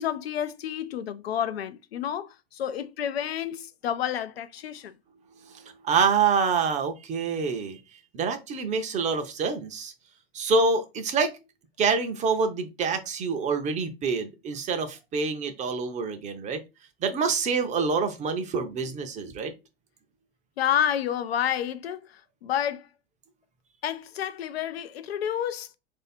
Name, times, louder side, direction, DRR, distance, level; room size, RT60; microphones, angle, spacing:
voice 1, 0.0-4.9 20.6-22.9 23.8-25.7, left 10 dB, 75° left, 0.5 m, -30 dB
voice 2, 5.4-7.8 8.1-9.9 10.3-11.4 11.8-16.6 17.0-19.5, right 5 dB, 25° right, 0.6 m, -26 dB
3.1 x 2.7 x 4.2 m
hypercardioid pair, 105°, 31 cm